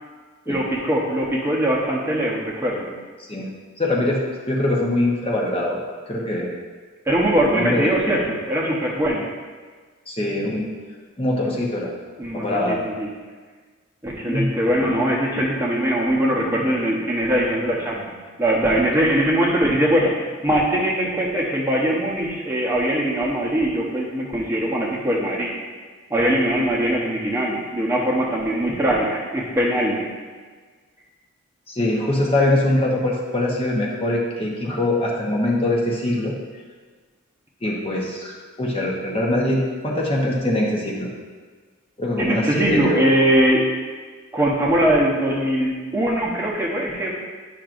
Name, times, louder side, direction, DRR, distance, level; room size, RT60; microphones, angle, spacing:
voice 1, 0.5-2.9 7.1-9.3 12.2-13.1 14.0-25.5 26.1-30.1 42.2-43.7 44.3-47.1, right 1 dB, 10° right, -4 dB, 0.9 m, -21 dB
voice 2, 3.8-4.2 4.5-5.8 6.1-6.5 7.5-8.3 10.1-10.7 11.2-11.9 12.3-12.8 14.3-14.5 31.7-36.3 37.6-41.1 42.0-43.0, left 1 dB, 25° left, -3 dB, 0.9 m, -23 dB
10.5 x 5.9 x 2.5 m, 1.5 s
head